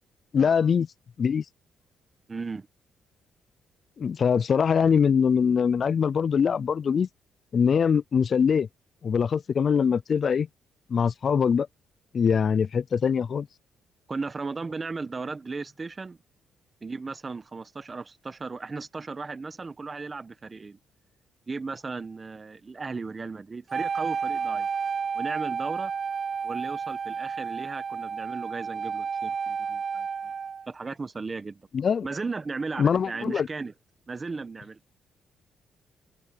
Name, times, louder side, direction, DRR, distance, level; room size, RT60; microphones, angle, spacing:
voice 1, 0.3-0.9 1.2-1.4 4.0-7.1 7.5-8.7 9.0-10.5 10.9-11.7 12.1-13.5 31.7-32.1 32.8-33.5, left 6 dB, 50° left, 0.4 m, -23 dB
voice 2, 2.3-2.7 14.1-16.2 16.8-20.8 21.5-24.7 25.1-25.9 26.4-30.1 30.7-31.6 32.0-33.7 34.1-34.8, right 4 dB, 30° right, 1.3 m, -36 dB
Wind instrument woodwind instrument, 23.7-30.7, right 6 dB, 45° right, 2.3 m, -31 dB
cardioid pair, 90°, 0 cm